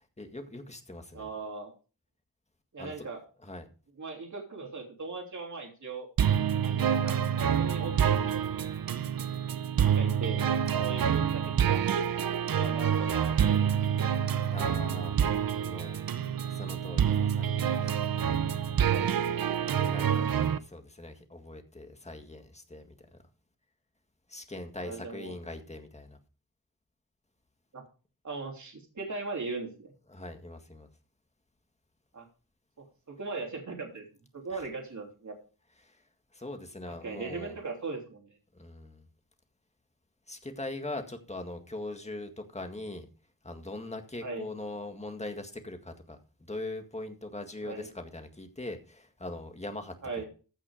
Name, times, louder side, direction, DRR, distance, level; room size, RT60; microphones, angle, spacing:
voice 1, 0.2-1.3 2.8-3.1 3.4-3.7 10.7-10.9 14.5-15.2 15.6-16.0 16.4-18.3 19.7-22.9 24.3-26.2 30.1-30.9 34.5-34.6 35.8-36.0 36.3-37.6 38.5-39.0 40.3-43.1 43.4-46.2 46.5-50.2, left 2 dB, 20° left, 1.9 m, -41 dB
voice 2, 1.1-1.7 2.7-3.2 4.0-6.1 6.6-8.4 9.8-10.4 10.8-11.8 12.5-14.1 18.9-19.1 19.6-19.7 24.8-25.3 27.7-27.8 28.2-29.9 32.1-32.3 32.8-34.0 34.3-35.3 37.0-38.3 44.2-44.4 47.6-47.9 50.0-50.3, right 4 dB, 55° right, 3.1 m, -39 dB
sound 1, 6.2-20.6, right 8 dB, 90° right, 0.7 m, -27 dB
15.0 x 6.1 x 5.1 m
wide cardioid pair, 115°, 34 cm